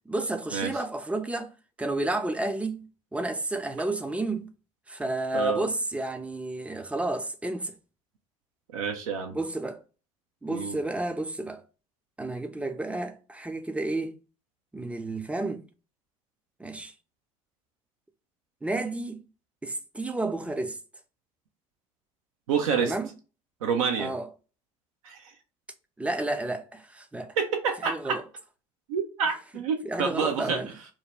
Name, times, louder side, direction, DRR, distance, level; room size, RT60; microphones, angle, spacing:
voice 1, 0.0-1.5 1.8-2.8 3.1-4.5 4.9-7.7 9.3-9.8 10.4-11.6 12.2-14.1 14.7-15.6 16.6-16.9 18.6-19.2 19.6-20.8 22.8-23.1 24.0-24.3 26.0-27.3 27.9-28.2 29.8-30.7, right 2 dB, 5° right, 0.4 m, -31 dB
voice 2, 5.3-5.6 8.7-9.3 10.5-10.8 22.5-22.9 23.6-24.1 25.0-25.3 27.4-28.2 28.9-30.6, right 6 dB, 75° right, 0.4 m, -28 dB
2.5 x 2.2 x 2.8 m
figure-of-eight pair, 65°, 18 cm